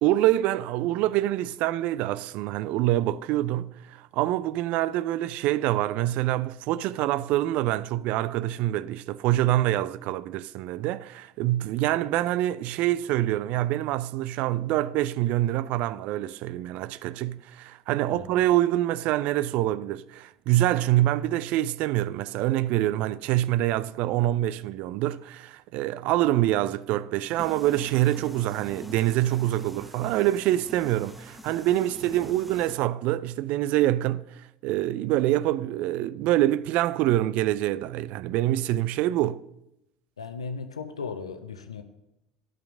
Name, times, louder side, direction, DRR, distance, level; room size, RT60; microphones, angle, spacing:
voice 1, 0.0-39.4, right 14 dB, 55° right, 0.4 m, -25 dB
voice 2, 18.1-18.4 40.2-41.8, left 5 dB, 80° left, 0.7 m, -36 dB
sound 1, 27.4-32.8, equal, 5° right, 1.1 m, -45 dB
11.0 x 5.8 x 6.2 m
figure-of-eight pair, 65°, 3 cm